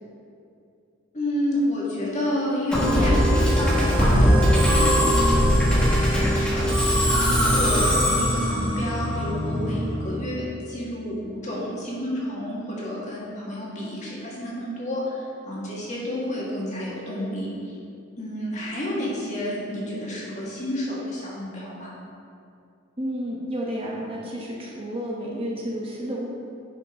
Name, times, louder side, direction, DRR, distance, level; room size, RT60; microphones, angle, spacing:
voice 1, 1.1-17.7 18.2-21.9, left 1 dB, 35° left, -6 dB, 1.8 m, -30 dB
Musical instrument, 2.7-10.0, equal, 5° left, 1.4 m, -20 dB
voice 2, 23.0-26.3, equal, 25° right, -4 dB, 1.0 m, -31 dB
10.5 x 5.5 x 3.7 m, 2.5 s
head